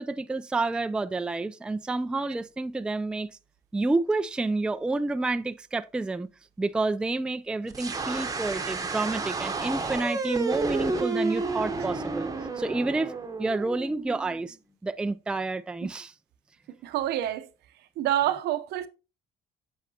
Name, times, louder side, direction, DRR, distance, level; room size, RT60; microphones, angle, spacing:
voice 1, 0.0-3.3 3.7-6.3 6.6-13.1 13.4-14.6 14.8-16.1, right 2 dB, 5° right, 0.3 m, -29 dB
sound 1, 7.7-14.5, right 3 dB, 20° right, 0.9 m, -31 dB
voice 2, 16.8-17.5 18.0-18.9, right 12 dB, 75° right, 0.7 m, -27 dB
8.2 x 6.5 x 2.8 m
cardioid pair, 110°, 17 cm